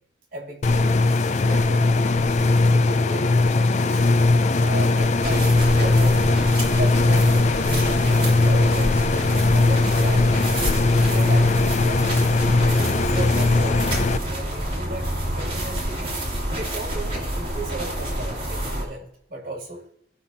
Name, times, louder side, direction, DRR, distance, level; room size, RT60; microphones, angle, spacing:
voice 1, 0.3-1.9 2.6-4.3 4.6-6.3 6.8-9.1 9.5-10.5 10.9-12.0 12.7-14.0 14.3-16.0 16.4-19.8, right 2 dB, 55° right, -1 dB, 2.1 m, -36 dB
sound 1, 0.6-14.2, left 3 dB, 40° left, 0.4 m, -19 dB
sound 2, 5.2-18.8, right 1 dB, 35° right, 2.4 m, -28 dB
16.5 x 5.7 x 2.7 m, 0.70 s
head